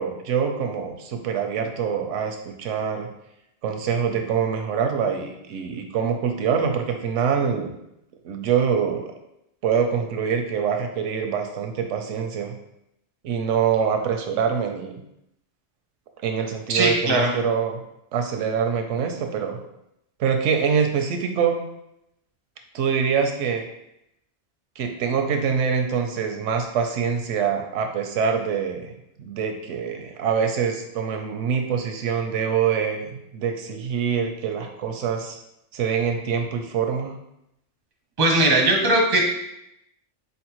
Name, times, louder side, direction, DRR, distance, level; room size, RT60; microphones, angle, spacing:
voice 1, 0.0-3.1 3.6-7.7 8.2-9.1 9.6-12.5 13.2-15.0 16.2-17.8 18.1-19.6 20.2-21.6 22.7-23.6 24.8-28.9 29.2-35.4 35.7-37.2, right 7 dB, 85° right, 5 dB, 0.9 m, -25 dB
voice 2, 16.7-17.3 38.2-39.2, right 2 dB, 25° right, 0 dB, 0.5 m, -19 dB
4.0 x 3.5 x 3.0 m, 0.81 s
omnidirectional pair, 1.2 m